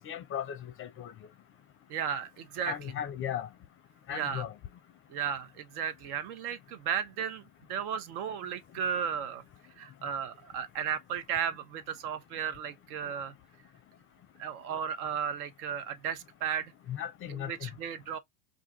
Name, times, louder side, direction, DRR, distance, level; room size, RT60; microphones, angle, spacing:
voice 1, 0.0-1.1 2.7-3.5 4.1-4.5 16.9-17.7, left 10 dB, 30° left, 0.5 m, -36 dB
voice 2, 1.9-2.9 4.1-4.5 5.1-7.4 7.7-9.4 9.8-13.3 14.4-16.7 17.3-18.2, right 8 dB, 65° right, 0.9 m, -34 dB
2.5 x 2.3 x 3.7 m
hypercardioid pair, 95°, 47 cm